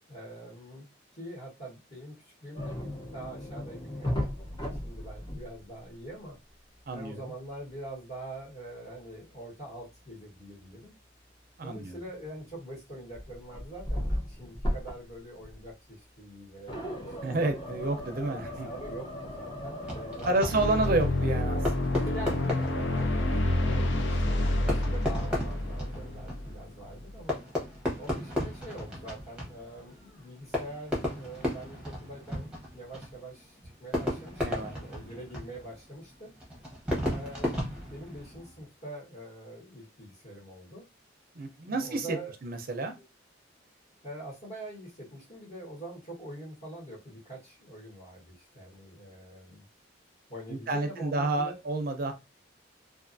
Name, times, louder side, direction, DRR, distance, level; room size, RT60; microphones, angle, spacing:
voice 1, 0.1-0.9 1.1-4.3 4.7-6.4 6.9-10.9 11.6-17.4 18.2-20.6 22.0-27.4 28.0-36.3 37.0-40.8 41.7-42.3 44.0-49.6 50.3-51.5, right 1 dB, 40° left, 1.2 m, -44 dB
sound 1, 2.5-5.8 6.1-6.3 9.8-9.9 12.2-12.6 13.1-15.2 15.4-15.7 16.7-20.5, equal, 20° left, 0.6 m, -36 dB
voice 2, 6.9-7.2 11.6-12.0 17.2-18.7 20.3-22.0 34.4-34.7 41.3-43.0 50.5-52.1, right 2 dB, 50° right, 0.5 m, -30 dB
Fireworks, 19.8-38.6, left 1 dB, 5° right, 0.9 m, -36 dB
sound 2, 20.5-27.2, left 1 dB, 70° left, 0.5 m, -28 dB
2.5 x 2.4 x 2.5 m
head